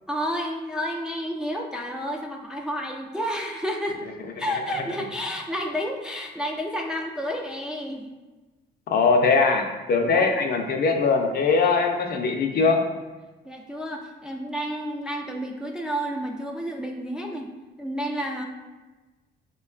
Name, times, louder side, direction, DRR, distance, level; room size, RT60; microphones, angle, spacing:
voice 1, 0.1-4.0 4.4-8.1 10.1-10.5 13.4-17.5 17.8-18.4, equal, 5° right, 1 dB, 0.3 m, -30 dB
voice 2, 8.9-12.8, left 4 dB, 55° left, 3 dB, 0.5 m, -21 dB
4.9 x 2.2 x 2.4 m, 1.2 s
cardioid pair, 90°, 20 cm